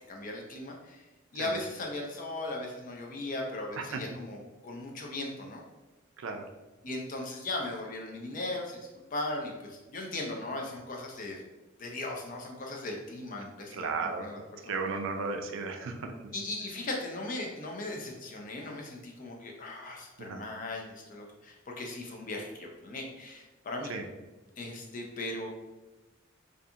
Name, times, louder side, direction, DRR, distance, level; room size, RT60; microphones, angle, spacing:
voice 1, 0.1-1.0 1.3-5.6 6.8-8.8 9.1-11.4 11.8-14.8 16.3-23.9 24.6-25.5, left 2 dB, 40° left, 0 dB, 0.4 m, -38 dB
voice 2, 13.7-14.3 14.7-16.3 20.2-20.4 23.9-24.0, right 4 dB, 80° right, 4 dB, 0.4 m, -34 dB
2.4 x 2.3 x 2.7 m, 1.1 s
head